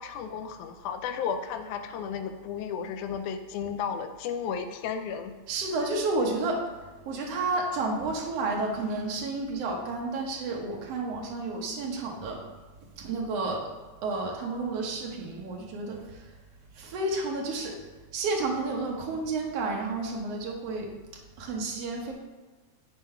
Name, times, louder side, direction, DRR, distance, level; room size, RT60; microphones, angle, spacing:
voice 1, 0.0-5.3, left 7 dB, 85° left, 8 dB, 2.1 m, -33 dB
voice 2, 5.5-6.6 7.1-12.4 13.0-13.7 14.0-16.2 16.8-17.8 18.1-20.9 21.4-22.1, right 3 dB, 60° right, 0 dB, 1.9 m, -31 dB
7.9 x 4.7 x 4.4 m, 1.3 s
omnidirectional pair, 3.5 m